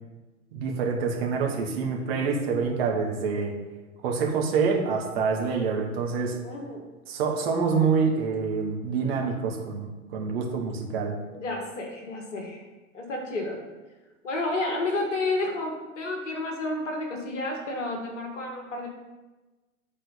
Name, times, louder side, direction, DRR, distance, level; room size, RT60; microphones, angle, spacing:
voice 1, 0.5-3.5 4.0-6.4 7.1-11.2, right 5 dB, 45° right, 1 dB, 1.6 m, -26 dB
voice 2, 6.4-6.8 11.3-12.6 12.9-13.6 14.2-18.9, left 2 dB, 55° left, 1 dB, 1.6 m, -31 dB
8.6 x 4.0 x 5.3 m, 1.2 s
figure-of-eight pair, 100°, 43 cm